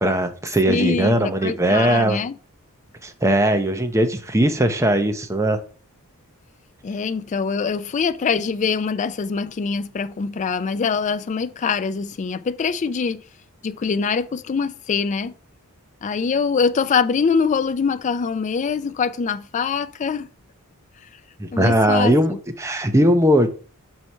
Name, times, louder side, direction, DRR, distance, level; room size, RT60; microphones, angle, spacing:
voice 1, 0.0-2.2 3.0-5.6 21.4-23.5, right 1 dB, 15° right, 0.6 m, -19 dB
voice 2, 0.7-2.4 6.8-13.2 13.6-15.3 16.0-20.3 21.5-22.4, left 5 dB, 35° left, 0.3 m, -23 dB
4.7 x 4.4 x 5.4 m
head